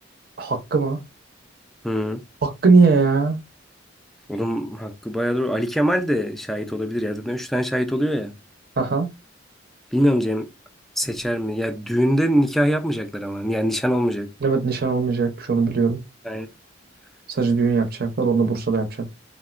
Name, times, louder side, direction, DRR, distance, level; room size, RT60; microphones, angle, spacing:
voice 1, 0.4-1.0 2.4-3.4 8.8-9.1 14.4-16.0 17.3-19.1, right 4 dB, 50° right, 0.6 m, -20 dB
voice 2, 1.8-2.2 4.3-8.4 9.9-10.5 11.0-14.3 16.2-16.5, equal, ahead, 0.3 m, -23 dB
3.6 x 2.1 x 2.4 m
head